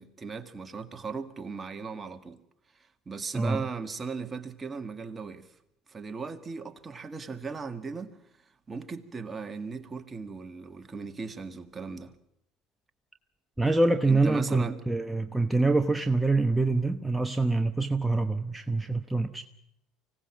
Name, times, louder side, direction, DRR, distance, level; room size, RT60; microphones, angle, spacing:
voice 1, 0.0-2.4 3.1-5.5 5.9-8.2 8.7-12.1 14.1-14.8, right 4 dB, 25° right, 1.9 m, -37 dB
voice 2, 13.6-19.4, right 2 dB, 5° right, 1.1 m, -25 dB
24.5 x 17.5 x 7.4 m
supercardioid pair, 85°, 0 cm